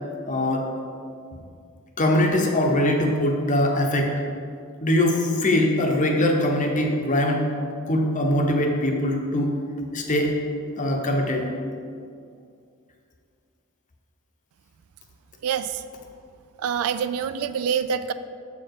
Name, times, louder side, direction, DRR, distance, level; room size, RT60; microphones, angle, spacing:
voice 1, 0.3-0.7 2.0-4.1 4.8-7.5 7.8-9.5 9.9-10.3 10.8-11.5, left 1 dB, 35° left, 2 dB, 0.8 m, -22 dB
voice 2, 15.4-15.8 16.6-18.1, right 7 dB, 85° right, 13 dB, 0.3 m, -26 dB
7.2 x 4.8 x 4.7 m, 2.3 s
head